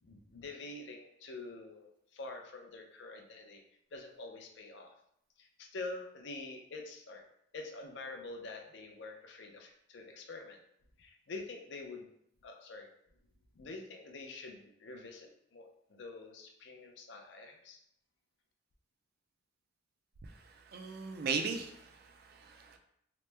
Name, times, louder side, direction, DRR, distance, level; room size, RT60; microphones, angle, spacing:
voice 1, 0.0-3.6 3.9-4.9 5.4-7.2 7.5-10.6 11.0-12.0 12.4-12.9 13.5-17.8, left 3 dB, 65° left, 3 dB, 0.5 m, -46 dB
voice 2, 20.7-22.8, right 5 dB, 55° right, 5 dB, 0.4 m, -37 dB
2.9 x 2.1 x 3.2 m, 0.72 s
head